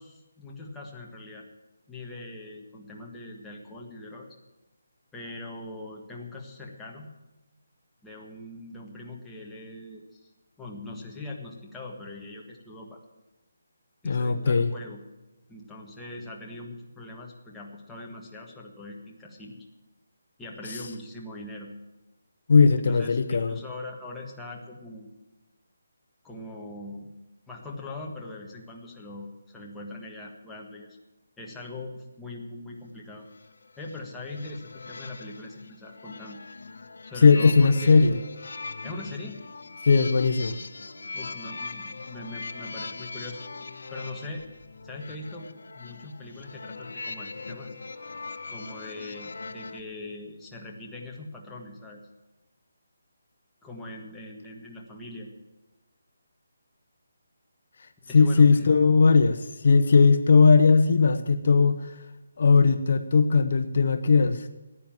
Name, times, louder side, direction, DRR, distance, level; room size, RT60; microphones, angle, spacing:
voice 1, 0.0-1.4 1.9-4.3 5.1-7.1 8.0-10.3 10.6-13.0 14.0-15.0 15.5-19.6 20.4-21.7 22.8-25.1 26.2-27.1 27.5-31.0 31.4-33.3 33.8-36.4 37.0-38.1 38.8-39.4 41.1-43.4 43.9-44.5 44.8-47.7 48.5-52.0 53.6-55.3 58.0-58.7, left 2 dB, 5° left, -3 dB, 1.6 m, -41 dB
voice 2, 14.0-14.7 20.7-20.8 22.5-23.6 37.2-38.2 39.8-40.6 58.1-61.9 62.4-64.5, left 4 dB, 50° left, 9 dB, 0.9 m, -19 dB
sound 1, 33.2-49.8, left 3 dB, 70° left, 1.1 m, -40 dB
15.5 x 9.7 x 7.6 m, 1.1 s
hypercardioid pair, 170°, 0 cm